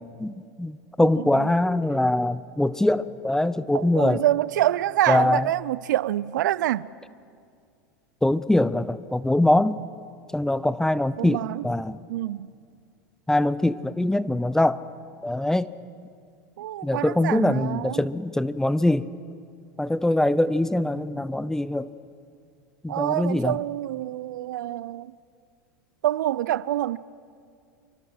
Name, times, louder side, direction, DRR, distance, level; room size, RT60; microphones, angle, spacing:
voice 1, 0.2-4.2 5.1-5.5 8.2-9.8 10.3-12.0 13.3-14.8 15.2-15.7 16.8-19.1 19.8-21.9 22.8-23.6, left 1 dB, 5° left, 0.7 m, -23 dB
voice 2, 1.2-1.5 3.7-6.9 11.2-11.7 12.1-12.5 16.6-18.0 22.9-25.1 26.0-27.0, right 13 dB, 75° right, 0.5 m, -26 dB
27.0 x 24.0 x 6.3 m
hypercardioid pair, 95°, 10 cm